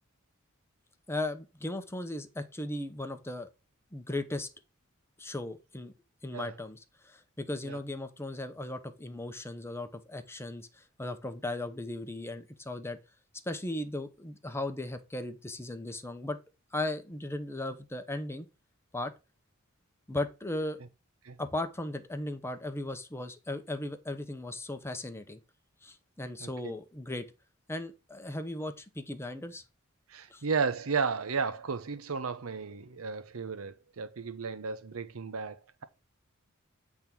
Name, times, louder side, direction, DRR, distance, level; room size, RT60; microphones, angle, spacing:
voice 1, 1.1-3.5 3.9-4.5 5.2-5.9 6.2-13.0 13.5-16.4 16.7-18.5 18.9-19.1 20.1-20.8 21.4-25.4 25.8-27.3 27.7-29.6 30.3-30.4, left 1 dB, 10° left, 0.8 m, -37 dB
voice 2, 26.4-26.7 30.1-35.8, right 5 dB, 75° right, 0.8 m, -34 dB
8.5 x 3.6 x 6.0 m
head